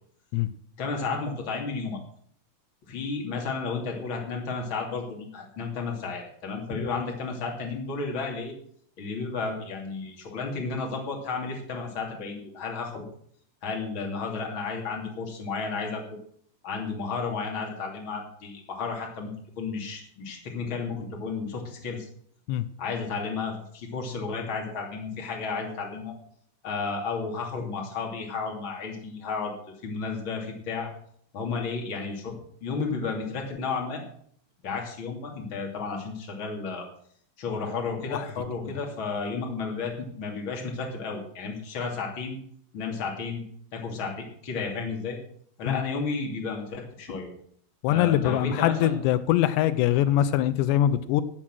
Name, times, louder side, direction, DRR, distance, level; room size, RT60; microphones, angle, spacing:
voice 1, 0.8-2.0 2.9-8.5 9.0-13.0 13.6-16.0 16.6-19.3 19.6-22.1 22.8-26.1 26.6-29.5 29.8-30.9 31.3-32.3 32.6-34.0 34.6-36.8 37.4-42.4 42.7-43.4 43.7-45.2 45.6-47.3 47.9-48.9, left 4 dB, 35° left, 1 dB, 2.9 m, -32 dB
voice 2, 47.8-51.2, left 12 dB, 85° left, 14 dB, 2.9 m, -23 dB
14.5 x 8.8 x 6.1 m, 0.63 s
omnidirectional pair, 4.9 m